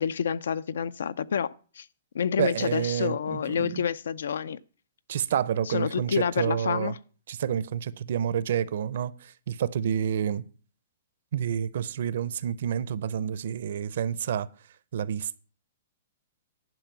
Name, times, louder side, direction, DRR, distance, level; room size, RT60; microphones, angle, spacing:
voice 1, 0.0-1.9 2.1-4.6 5.7-7.0, left 7 dB, 85° left, 0.5 m, -28 dB
voice 2, 2.4-3.8 5.1-6.9 7.3-10.4 11.3-14.5 14.9-15.4, right 9 dB, 55° right, 0.5 m, -29 dB
11.0 x 4.8 x 6.9 m
hypercardioid pair, 175°, 0 cm